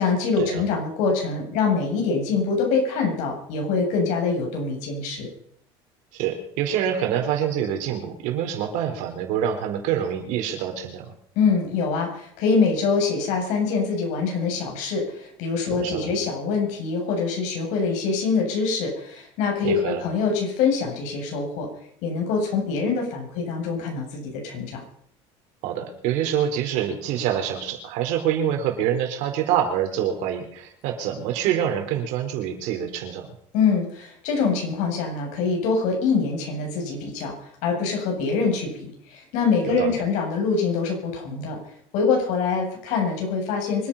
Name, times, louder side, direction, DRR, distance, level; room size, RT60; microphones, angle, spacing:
voice 1, 0.0-5.3 11.4-21.7 22.0-24.8 33.5-37.3 37.6-41.6 41.9-43.9, left 5 dB, 70° left, 2 dB, 7.9 m, -24 dB
voice 2, 6.1-11.1 15.7-16.1 19.6-20.0 25.6-33.3 39.6-40.0, right 9 dB, 75° right, 5 dB, 4.3 m, -26 dB
25.0 x 9.6 x 5.8 m, 0.66 s
cardioid pair, 125°, 13 cm